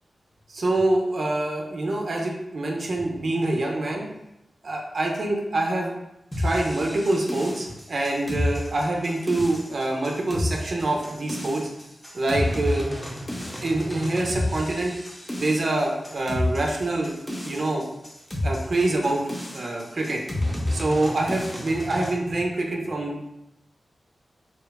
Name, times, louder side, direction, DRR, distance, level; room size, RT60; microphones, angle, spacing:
voice 1, 0.5-4.0 4.6-5.9 6.4-11.7 12.1-12.9 13.6-14.9 15.4-17.1 17.4-17.8 18.4-19.2 19.5-20.2 20.7-23.3, right 2 dB, 55° right, 0 dB, 0.4 m, -25 dB
sound 1, 6.3-22.1, left 1 dB, 10° left, 0.4 m, -31 dB
2.7 x 2.2 x 2.2 m, 0.86 s
wide cardioid pair, 105°, 0 cm